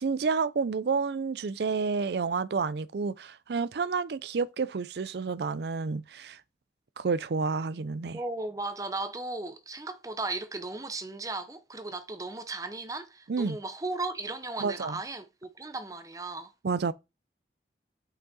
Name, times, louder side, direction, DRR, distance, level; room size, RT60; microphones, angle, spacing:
voice 1, 0.0-6.4 7.0-8.2 13.3-13.6 14.6-15.0 16.6-16.9, right 4 dB, 65° right, 0.4 m, -30 dB
voice 2, 8.1-16.5, right 3 dB, 20° right, 0.7 m, -36 dB
6.0 x 5.3 x 4.1 m
head